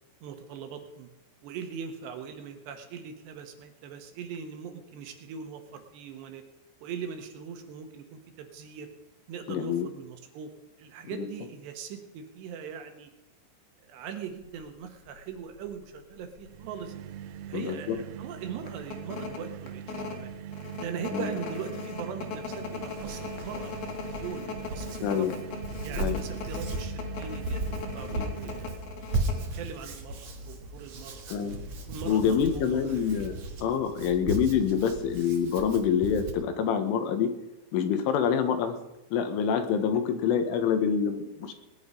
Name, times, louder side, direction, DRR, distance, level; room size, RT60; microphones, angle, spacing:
voice 1, 0.2-1.1 1.4-6.4 6.8-8.9 9.3-10.5 10.8-13.1 13.8-16.9 17.5-20.3 20.7-23.7 24.1-25.3 25.8-28.8 29.5-31.6 31.9-33.0, right 7 dB, 70° right, 6 dB, 3.2 m, -40 dB
voice 2, 9.5-9.9 11.1-11.3 17.5-18.0 21.1-21.3 25.0-25.3 26.0-26.2 28.2-28.3 31.3-31.6 32.1-37.3 37.7-38.8 39.1-41.5, left 7 dB, 85° left, 7 dB, 3.9 m, -26 dB
sound 1, 14.4-14.6 15.2-15.3 15.6-16.5 16.9-17.0 17.3-17.6 18.0-18.1 18.7-29.5, left 6 dB, 60° left, 3.4 m, -39 dB
sound 2, 16.4-29.0, right 10 dB, 85° right, 3.3 m, -42 dB
Hands, 22.3-36.3, right 2 dB, 55° right, 1.9 m, -37 dB
19.5 x 10.5 x 5.5 m, 0.97 s
omnidirectional pair, 5.6 m